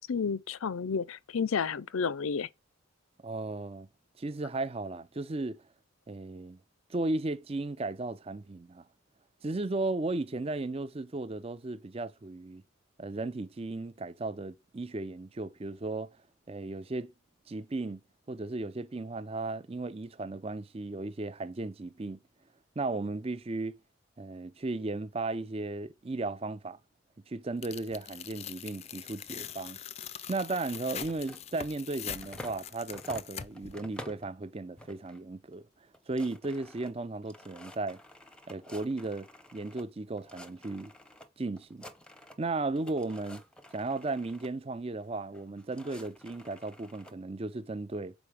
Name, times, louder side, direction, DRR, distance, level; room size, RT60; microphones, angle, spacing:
voice 1, 0.1-2.5, left 5 dB, 80° left, 0.5 m, -31 dB
voice 2, 3.2-3.9 4.2-5.6 6.1-6.6 6.9-8.8 9.4-12.6 13.0-16.1 16.5-17.1 17.5-18.0 18.3-22.2 22.8-23.8 24.2-26.8 27.3-29.8 30.3-35.6 36.1-38.0 38.5-40.9 41.4-41.8 42.4-43.4 43.7-48.1, right 2 dB, 30° right, 0.5 m, -35 dB
Tearing, 27.6-33.7, left 9 dB, 30° left, 0.4 m, -43 dB
sound 1, 31.0-32.6 32.9-34.3 34.8-35.2 35.5-35.6 35.9-39.9 40.2-41.3 41.6-42.5 42.8-44.5 45.3-47.1, equal, 5° left, 0.8 m, -50 dB
7.1 x 4.7 x 4.8 m
head